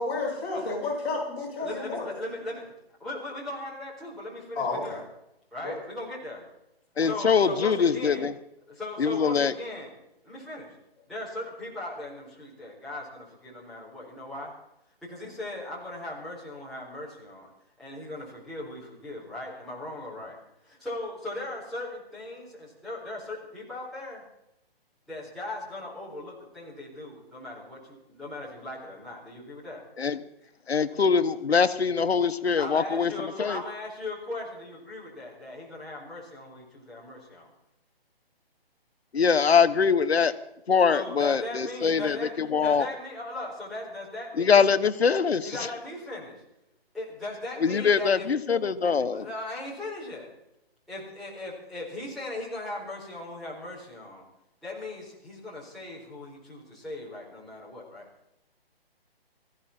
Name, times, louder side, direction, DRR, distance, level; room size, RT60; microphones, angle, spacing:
voice 1, 0.0-2.1 4.5-5.0 5.6-5.8 7.0-7.2 7.5-7.6, left 3 dB, 25° left, -6 dB, 7.8 m, -31 dB
voice 2, 1.6-2.6 3.0-5.0 5.5-6.4 7.0-8.3 8.7-10.0 10.2-10.7 11.1-14.5 15.0-17.5 17.8-20.4 20.6-24.2 25.1-29.8 30.4-30.5 32.6-37.5 40.9-44.8 45.4-46.4 46.9-48.3 48.8-50.3 50.9-54.2 54.6-58.0, left 2 dB, ahead, -9 dB, 4.3 m, -38 dB
voice 3, 7.0-8.3 9.0-9.5 30.0-30.2 30.7-33.6 39.1-40.3 40.7-42.8 44.4-45.5 47.6-49.3, left 6 dB, 80° left, 12 dB, 1.3 m, -23 dB
19.0 x 15.5 x 4.4 m, 0.83 s
hypercardioid pair, 165°, 31 cm